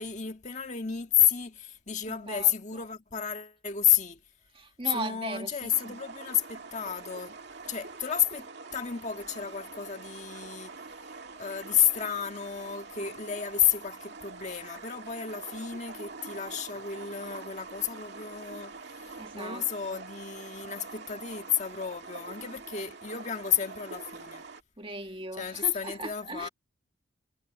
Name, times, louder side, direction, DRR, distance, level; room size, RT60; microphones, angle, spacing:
voice 1, 0.0-4.2 4.9-7.4 7.7-10.7 11.4-24.4 25.3-26.5, left 9 dB, 35° left, 1.8 m, -31 dB
voice 2, 4.6-6.0 19.2-19.6 19.9-20.0 24.8-26.5, right 2 dB, 25° right, 1.8 m, -38 dB
sound 1, 5.7-24.6, right 4 dB, 55° right, 2.4 m, -45 dB
head